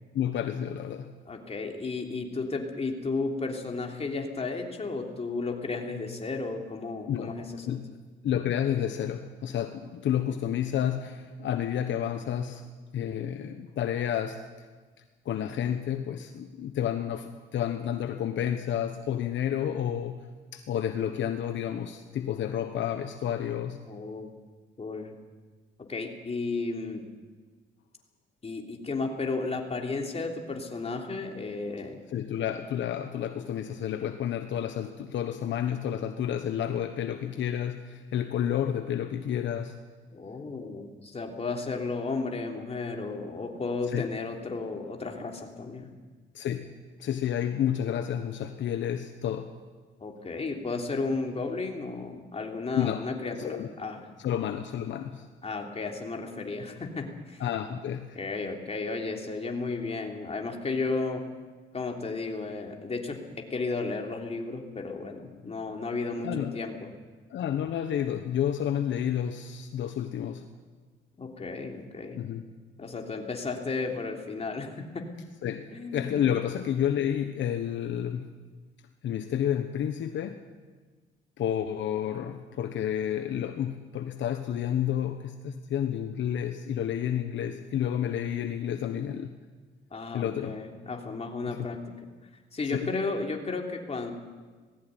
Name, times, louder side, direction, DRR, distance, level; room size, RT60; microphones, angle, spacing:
voice 1, 0.1-1.1 7.1-7.3 7.7-8.0 8.2-14.7 15.2-20.3 20.5-23.8 32.1-39.8 43.9-44.1 46.3-46.7 47.0-49.5 52.8-53.1 53.4-53.7 54.2-55.3 57.4-58.2 66.2-66.6 67.3-70.5 72.2-72.4 75.4-78.3 79.0-80.4 81.4-89.4 90.1-90.6 91.5-91.6 92.7-92.9, left 9 dB, 70° left, 7 dB, 1.2 m, -30 dB
voice 2, 1.3-7.8 23.9-24.3 24.8-25.2 25.8-27.0 28.4-32.0 40.1-45.9 50.0-54.0 55.4-57.4 58.1-61.3 61.7-66.9 71.2-72.2 72.8-75.1 75.7-76.2 89.9-91.8 92.5-94.1, left 3 dB, 30° left, 2 dB, 3.3 m, -33 dB
19.0 x 15.5 x 9.3 m, 1.4 s
cardioid pair, 90°, 20 cm